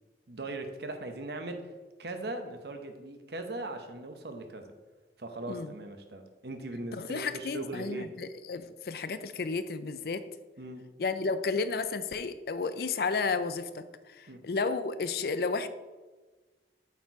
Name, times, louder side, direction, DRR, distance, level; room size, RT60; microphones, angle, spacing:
voice 1, 0.3-1.7 2.0-4.6 5.2-8.1 10.6-10.8 14.3-14.4, right 2 dB, 65° right, 6 dB, 0.9 m, -39 dB
voice 2, 6.9-10.3 11.0-15.7, left 4 dB, 55° left, 12 dB, 0.4 m, -32 dB
8.2 x 4.4 x 4.7 m, 1.3 s
head